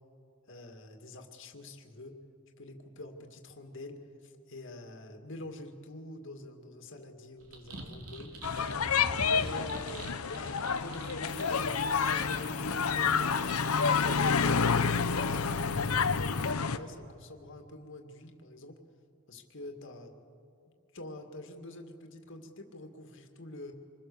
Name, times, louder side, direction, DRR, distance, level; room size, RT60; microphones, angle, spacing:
voice 1, 0.5-2.1 2.6-8.8 9.4-15.9 16.5-18.8 19.3-20.1 20.9-23.7, left 2 dB, 60° left, 4 dB, 2.1 m, -46 dB
sound 1, 7.4-14.1, right 1 dB, 90° right, 3.2 m, -46 dB
sound 2, 8.4-16.8, left 5 dB, 90° left, 0.9 m, -29 dB
sound 3, 11.3-16.5, left 9 dB, 40° left, 2.2 m, -48 dB
26.0 x 21.0 x 6.9 m, 2.5 s
head